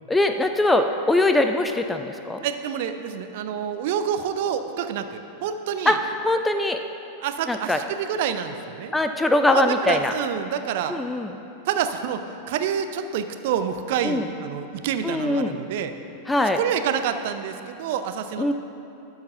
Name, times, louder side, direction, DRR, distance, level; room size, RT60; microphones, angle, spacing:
voice 1, 0.1-2.4 5.9-6.0 6.2-6.8 7.5-7.8 8.9-10.1 10.9-11.3 14.0-14.2 15.0-15.5 16.3-16.6 18.4-18.5, left 2 dB, 10° left, 6 dB, 0.4 m, -21 dB
voice 2, 2.4-6.0 7.2-9.0 9.5-10.9 11.7-12.2 12.5-15.9 16.5-18.5, right 8 dB, 50° right, 8 dB, 0.5 m, -27 dB
12.0 x 4.7 x 5.6 m, 2.7 s
figure-of-eight pair, 90°, 0 cm